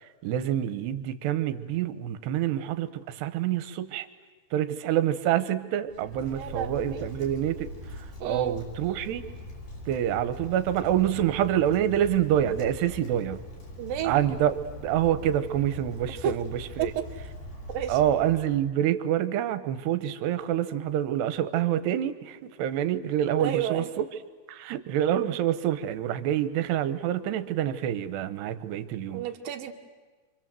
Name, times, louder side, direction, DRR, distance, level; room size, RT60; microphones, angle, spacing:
voice 1, 0.2-4.1 4.5-7.7 8.0-9.2 9.9-13.4 14.0-14.5 14.8-16.9 17.9-24.0 24.5-29.2, right 11 dB, 80° right, 11 dB, 3.2 m, -27 dB
Wind, 5.9-18.7, left 2 dB, 50° left, 6.9 m, -42 dB
voice 2, 6.3-7.0 8.2-8.6 13.8-14.1 16.2-16.3 16.8-17.0 17.7-18.0 23.4-23.9 29.1-29.7, right 9 dB, 65° right, 5 dB, 2.9 m, -31 dB
27.5 x 25.5 x 7.6 m, 1.3 s
omnidirectional pair, 4.8 m